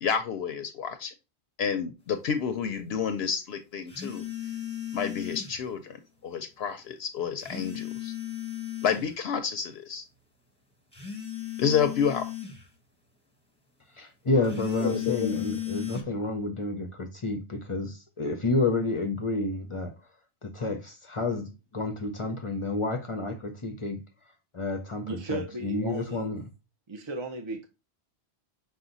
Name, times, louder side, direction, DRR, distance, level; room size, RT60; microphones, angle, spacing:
voice 1, 0.0-1.1 1.6-4.2 4.9-8.1 8.8-10.0 11.6-12.3 14.8-15.3, left 7 dB, 75° left, 0.8 m, -29 dB
sound 1, 3.9-5.6 7.4-9.1 10.9-12.6 14.4-16.0, left 12 dB, 5° left, 1.2 m, -35 dB
voice 2, 14.0-19.9 20.4-24.0 24.5-26.5, left 2 dB, 35° left, 0.6 m, -30 dB
voice 3, 25.1-26.3 26.9-27.7, right 2 dB, 35° right, 0.5 m, -36 dB
5.8 x 2.2 x 3.8 m
omnidirectional pair, 1.1 m